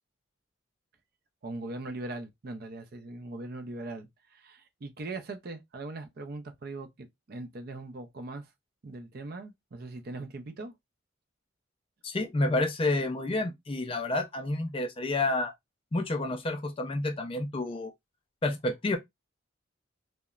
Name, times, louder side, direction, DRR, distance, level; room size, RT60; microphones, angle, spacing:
voice 1, 1.4-8.5 8.8-10.7, right 2 dB, 50° right, 0.5 m, -40 dB
voice 2, 12.0-15.5 15.9-17.9 18.4-19.0, left 2 dB, 25° left, 0.3 m, -29 dB
2.9 x 2.1 x 2.3 m
head